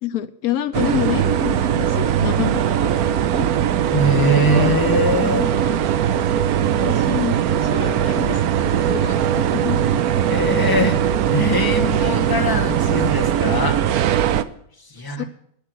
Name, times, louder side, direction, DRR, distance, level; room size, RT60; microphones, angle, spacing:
voice 1, 0.0-3.1 3.3-3.5 5.2-5.8 6.7-10.0 15.1-15.2, left 12 dB, 85° left, 13 dB, 1.2 m, -28 dB
sound 1, 0.7-14.4, right 9 dB, 80° right, 1.2 m, -20 dB
voice 2, 3.9-5.4 10.3-14.1 14.9-15.2, left 1 dB, 15° left, 2 dB, 1.5 m, -22 dB
12.0 x 9.8 x 6.3 m, 0.67 s
omnidirectional pair, 1.5 m